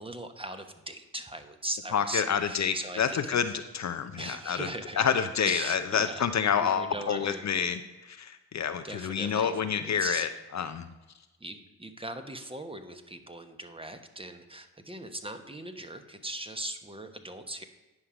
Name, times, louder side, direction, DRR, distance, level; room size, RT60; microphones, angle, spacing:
voice 1, 0.0-3.4 4.1-6.3 6.6-7.4 8.8-9.5 9.8-10.3 11.4-17.6, right 1 dB, 15° right, 7 dB, 1.1 m, -39 dB
voice 2, 1.9-4.7 5.0-7.8 8.1-10.8, left 7 dB, 45° left, 9 dB, 0.6 m, -28 dB
9.6 x 5.6 x 4.9 m, 1.1 s
hypercardioid pair, 45°, 38 cm